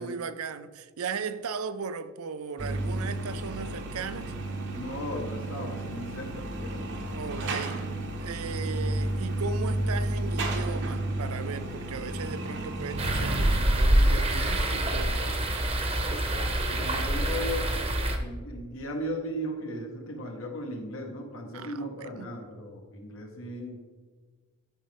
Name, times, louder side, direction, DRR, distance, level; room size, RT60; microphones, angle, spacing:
voice 1, 0.0-4.3 7.1-7.8 8.2-15.7 16.6-16.9 21.5-22.3, right 5 dB, 75° right, 0.5 m, -37 dB
sound 1, 2.6-13.6, right 1 dB, 55° right, 0.9 m, -32 dB
voice 2, 4.7-7.8 16.8-17.8 18.1-23.8, equal, 65° left, 1.5 m, -37 dB
sound 2, 13.0-18.2, right 1 dB, 25° right, 0.9 m, -26 dB
12.5 x 5.3 x 3.5 m
head